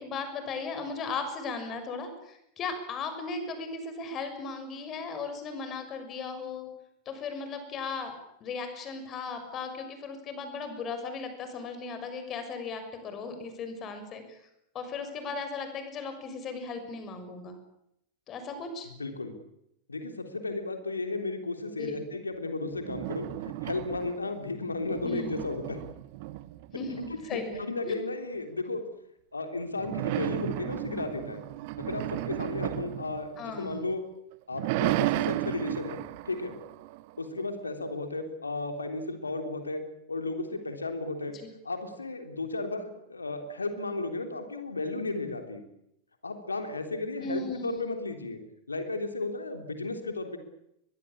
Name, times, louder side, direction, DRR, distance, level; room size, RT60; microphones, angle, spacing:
voice 1, 0.0-6.7 7.0-8.1 8.4-14.4 14.7-17.5 18.3-18.9 21.8-22.0 25.0-25.4 26.7-27.9 33.4-33.9 41.3-41.5 47.2-47.8, left 4 dB, 30° left, 8 dB, 6.5 m, -37 dB
voice 2, 18.9-19.3 19.9-25.8 27.0-28.8 29.3-31.4 31.8-34.0 34.5-36.6 37.2-39.8 40.1-41.4 41.6-45.6 46.2-48.4 48.7-50.4, left 2 dB, 80° left, 7 dB, 3.5 m, -34 dB
sound 1, 22.7-24.4 24.7-27.5 29.8-33.9 34.3-37.4, right 16 dB, 50° right, 1.1 m, -34 dB
22.5 x 22.0 x 8.8 m, 0.78 s
figure-of-eight pair, 90°, 0 cm